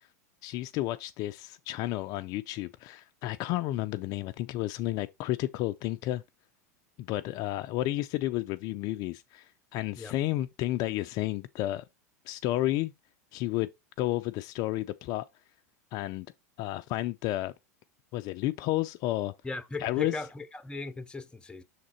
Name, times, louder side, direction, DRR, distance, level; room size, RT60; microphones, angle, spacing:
voice 1, 0.4-6.2 7.0-11.8 12.3-12.9 13.3-13.7 14.0-15.3 15.9-16.3 16.6-17.5 18.1-19.3 19.8-20.2, left 15 dB, 45° left, 0.4 m, -31 dB
voice 2, 19.4-21.6, left 3 dB, 10° left, 0.7 m, -37 dB
6.5 x 3.7 x 4.3 m
hypercardioid pair, 95°, 9 cm